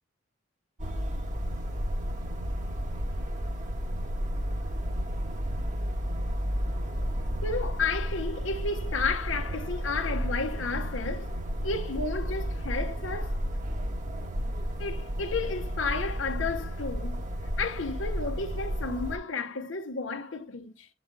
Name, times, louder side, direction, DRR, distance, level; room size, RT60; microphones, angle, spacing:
sound 1, 0.8-19.2, equal, 40° right, 1.2 m, -32 dB
voice 1, 7.4-11.3 11.6-13.4 14.8-17.2 17.6-20.9, left 4 dB, 70° left, 0.9 m, -32 dB
8.0 x 4.2 x 3.7 m
head